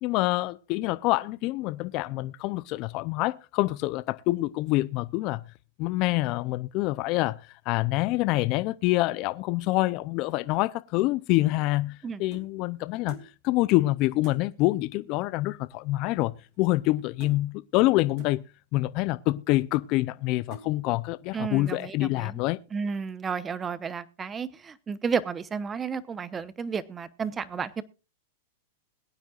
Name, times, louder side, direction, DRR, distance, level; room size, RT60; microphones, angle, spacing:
voice 1, 0.0-5.4 5.8-18.4 18.7-22.6, left 19 dB, 45° left, 0.5 m, -26 dB
sound 1, 11.4-12.6 13.1-13.3 13.7-13.8 14.2-14.5 15.4-15.5 15.7-16.0 16.3-16.9 17.2-17.4 18.2-18.4 19.1-19.2 19.8-20.1 20.5-20.7 21.3-21.5 21.8-22.1, right 5 dB, 50° right, 2.7 m, -49 dB
voice 2, 21.3-22.4 22.7-27.8, right 6 dB, 20° right, 0.9 m, -32 dB
21.5 x 9.3 x 2.4 m
hypercardioid pair, 130°, 0 cm